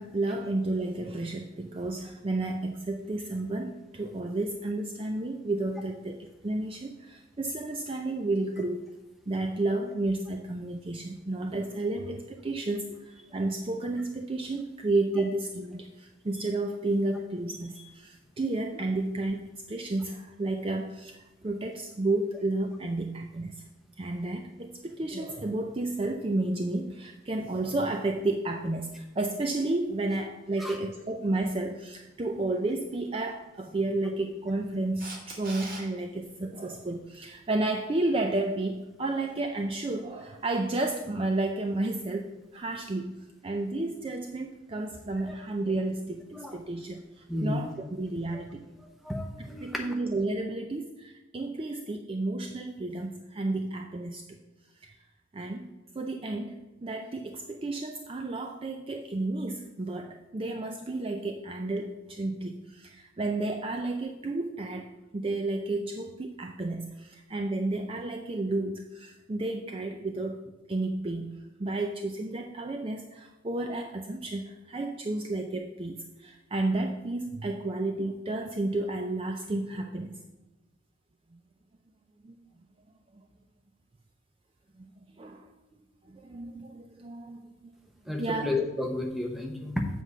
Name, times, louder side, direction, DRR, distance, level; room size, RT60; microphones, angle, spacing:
voice 1, 0.0-8.8 9.3-23.6 24.0-48.6 49.6-54.3 54.8-55.0 55.3-80.2 81.3-81.4 82.2-82.4 83.1-83.2 84.8-84.9 85.2-85.5 86.1-87.7 88.1-88.5, right 2 dB, 25° right, 4 dB, 0.4 m, -32 dB
Camera, 35.0-35.8 42.5-42.6, right 2 dB, 45° right, 1.6 m, -41 dB
voice 2, 47.3-47.6 48.3-48.4 49.0-49.8 88.1-89.9, left 2 dB, ahead, 2 dB, 0.8 m, -31 dB
7.7 x 4.7 x 6.7 m, 1.1 s
head